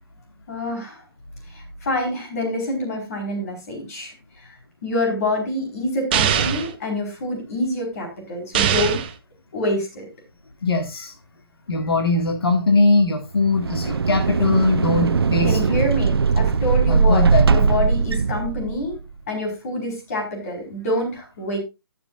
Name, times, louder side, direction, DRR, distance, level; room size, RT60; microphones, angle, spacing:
voice 1, 0.5-1.0 1.5-9.0 9.5-10.1 15.4-19.0 19.3-21.6, left 1 dB, 40° left, 2 dB, 4.5 m, -26 dB
sound 1, 6.1-6.7 8.5-9.1, right 9 dB, 25° right, 0.7 m, -21 dB
voice 2, 10.6-11.1 11.7-15.8 16.9-17.8, left 3 dB, 75° left, 2 dB, 2.1 m, -21 dB
sound 2, 13.4-19.0, right 5 dB, 80° right, 0.6 m, -20 dB
18.5 x 7.1 x 2.5 m, 0.25 s
hypercardioid pair, 160°, 13 cm